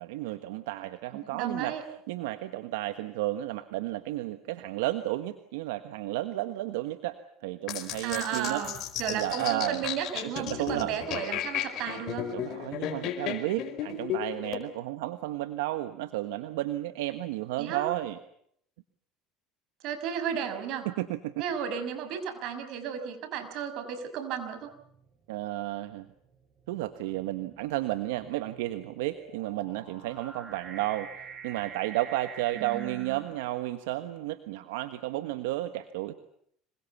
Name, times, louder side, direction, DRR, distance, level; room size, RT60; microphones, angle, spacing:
voice 1, 0.0-1.8 2.1-7.2 7.4-8.6 9.1-9.8 10.4-10.9 12.3-18.2 20.8-21.4 25.3-26.1 26.7-31.1 31.4-36.1, right 16 dB, 90° right, 11 dB, 1.3 m, -32 dB
voice 2, 1.1-1.8 8.0-12.3 17.6-17.8 19.8-20.9 21.4-24.7 32.5-33.2, right 8 dB, 65° right, 9 dB, 6.0 m, -34 dB
sound 1, 7.7-14.6, left 10 dB, 55° left, 4.5 m, -35 dB
sound 2, 24.7-25.1 25.9-34.1, right 6 dB, 35° right, 7.7 m, -47 dB
26.5 x 23.0 x 7.2 m, 0.69 s
supercardioid pair, 105°, 0 cm